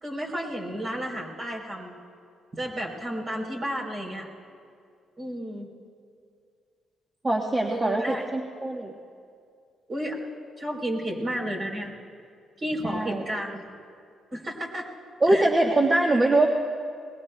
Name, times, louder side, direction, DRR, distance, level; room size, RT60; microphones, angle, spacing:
voice 1, 0.0-1.9 2.5-4.3 5.2-5.7 7.7-8.2 9.9-10.2 10.6-11.9 12.6-13.6 14.3-14.9 15.3-15.5, equal, 40° right, -2 dB, 3.6 m, -32 dB
voice 2, 7.2-8.9 12.8-13.2 15.2-16.5, right 2 dB, 25° right, 1 dB, 1.0 m, -23 dB
21.5 x 21.0 x 2.2 m, 2.3 s
cardioid pair, 90°, 0 cm